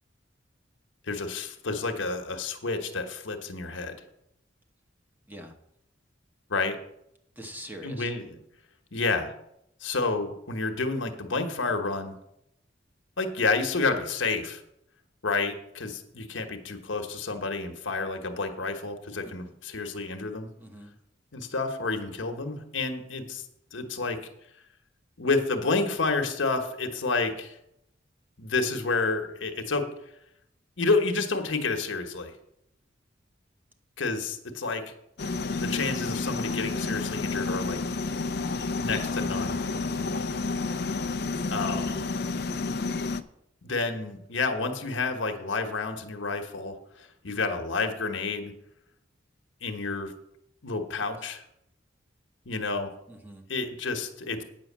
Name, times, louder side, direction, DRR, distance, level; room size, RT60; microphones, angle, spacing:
voice 1, 1.1-4.0 6.5-6.8 7.8-8.4 8.9-9.3 9.8-12.1 13.2-14.6 15.2-20.5 21.3-23.4 23.7-24.2 25.2-27.6 28.4-29.9 30.8-32.3 34.0-34.8 35.6-37.8 38.7-39.6 41.5-42.0 43.6-48.5 49.6-50.1 50.6-51.4 52.5-52.9 53.5-54.4, left 3 dB, 80° left, 5 dB, 1.2 m, -29 dB
voice 2, 7.4-8.1 19.2-19.3 20.6-20.9 39.7-40.1 53.1-53.4, equal, 10° right, 3 dB, 1.1 m, -43 dB
sound 1, 35.2-43.2, left 3 dB, 60° left, 0.5 m, -30 dB
9.1 x 6.3 x 7.3 m, 0.79 s
head